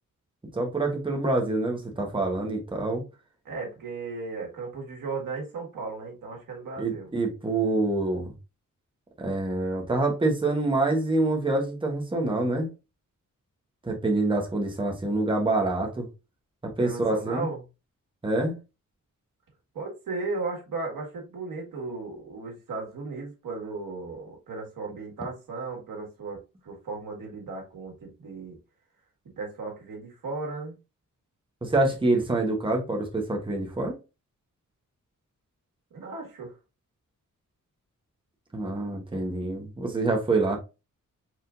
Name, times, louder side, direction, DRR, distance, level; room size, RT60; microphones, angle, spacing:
voice 1, 0.5-3.0 6.8-8.3 9.2-12.7 13.8-16.1 16.6-17.5 18.2-18.5 31.6-34.0 38.5-40.6, right 2 dB, 15° right, 1.0 m, -26 dB
voice 2, 3.4-7.1 16.8-17.6 19.7-28.6 29.4-30.8 35.9-36.5, right 3 dB, 90° right, 1.7 m, -36 dB
4.4 x 3.6 x 2.5 m
wide cardioid pair, 130°, 32 cm